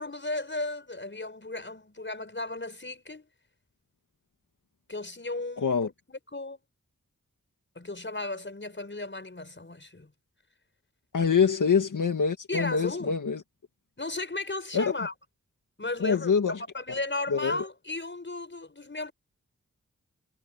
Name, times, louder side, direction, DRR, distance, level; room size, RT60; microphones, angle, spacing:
voice 1, 0.0-3.3 4.9-6.6 7.8-10.1 11.4-11.5 12.5-13.2 14.0-15.1 15.8-16.3 16.7-19.1, left 2 dB, 40° left, 5.8 m, -35 dB
voice 2, 5.6-5.9 11.1-13.4 14.7-14.9 16.0-16.6 17.3-17.6, left 6 dB, 85° left, 2.0 m, -25 dB
cardioid pair, 45°, 30 cm